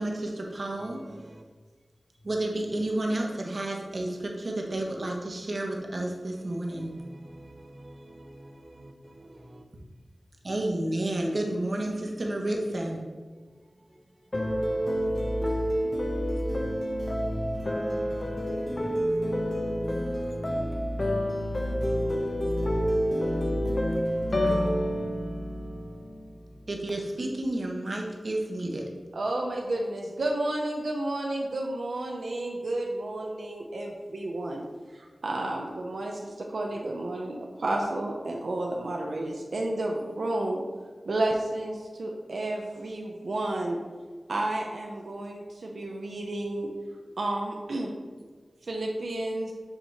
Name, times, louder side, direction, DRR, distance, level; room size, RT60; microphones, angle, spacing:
voice 1, 0.0-1.0 2.2-6.9 10.4-13.0 26.7-28.8, right 1 dB, 55° right, 1.1 m, -31 dB
voice 2, 0.8-1.4 6.5-9.6 13.3-13.4 13.9-14.0 14.7-15.1 16.6-16.7 17.2-19.0 19.4-19.6 25.2-25.4, right 1 dB, 40° right, 0.8 m, -51 dB
sound 1, 14.3-26.5, equal, 45° left, 0.8 m, -28 dB
voice 3, 29.1-34.6 34.9-36.2 36.5-40.6 41.1-43.8 44.3-46.7 47.2-47.9 48.7-49.5, right 1 dB, 85° right, 0.6 m, -31 dB
7.9 x 3.0 x 4.3 m
wide cardioid pair, 60°, 0 cm